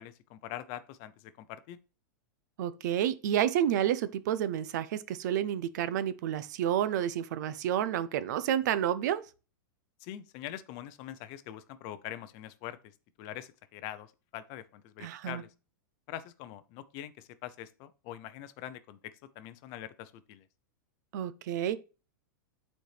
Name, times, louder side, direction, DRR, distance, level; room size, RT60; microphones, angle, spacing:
voice 1, 0.0-1.8 10.0-12.9 13.2-15.5 16.1-20.4, left 12 dB, 35° left, 0.5 m, -44 dB
voice 2, 2.6-9.2 15.0-15.4 21.1-21.8, right 10 dB, 60° right, 0.6 m, -30 dB
9.2 x 4.3 x 3.3 m
supercardioid pair, 160°, 11 cm